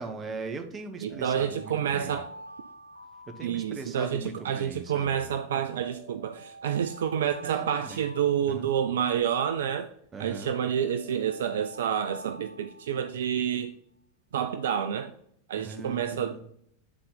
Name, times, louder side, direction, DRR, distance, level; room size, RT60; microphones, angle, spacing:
voice 1, 0.0-2.2 3.3-5.4 7.4-8.0 8.5-8.7 10.1-10.5 15.6-16.4, right 4 dB, 20° right, 1.0 m, -40 dB
voice 2, 1.0-2.3 3.4-9.9 10.2-13.7 14.3-15.1 15.5-16.5, right 8 dB, 60° right, 0.4 m, -29 dB
sound 1, 1.1-4.3 5.4-9.1 10.3-13.5, right 1 dB, 80° right, 0.7 m, -48 dB
8.7 x 3.9 x 3.9 m
figure-of-eight pair, 90°, 0 cm